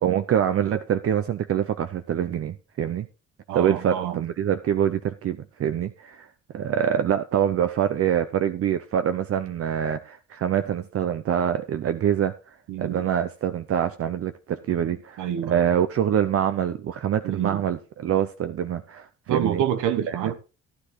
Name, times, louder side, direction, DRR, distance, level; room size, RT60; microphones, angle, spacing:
voice 1, 0.0-3.1 3.5-6.3 6.5-12.3 12.8-19.6 20.1-20.2, right 9 dB, 50° right, 0.6 m, -25 dB
voice 2, 3.5-4.2 12.7-13.0 15.2-15.7 17.2-17.6 19.3-20.4, right 10 dB, 80° right, 1.0 m, -27 dB
14.0 x 9.9 x 3.1 m
cardioid pair, 90°, 30 cm